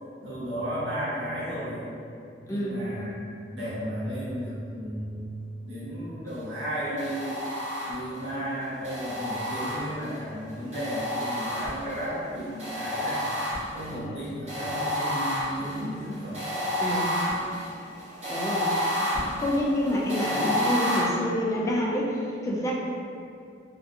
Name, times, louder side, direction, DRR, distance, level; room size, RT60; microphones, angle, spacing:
voice 1, 0.2-1.9 2.4-3.1 3.5-5.3 5.6-7.4 7.8-13.3 13.7-16.5, equal, 85° right, -10 dB, 1.0 m, -34 dB
voice 2, 2.5-2.8 16.8-17.1 18.3-18.8 19.2-22.7, left 1 dB, 20° left, -4 dB, 0.3 m, -28 dB
sound 1, 7.0-8.2 8.8-10.2 10.7-12.1 12.6-13.9 14.5-21.0, left 1 dB, 35° right, 0.8 m, -30 dB
2.4 x 2.4 x 2.6 m, 2.5 s
head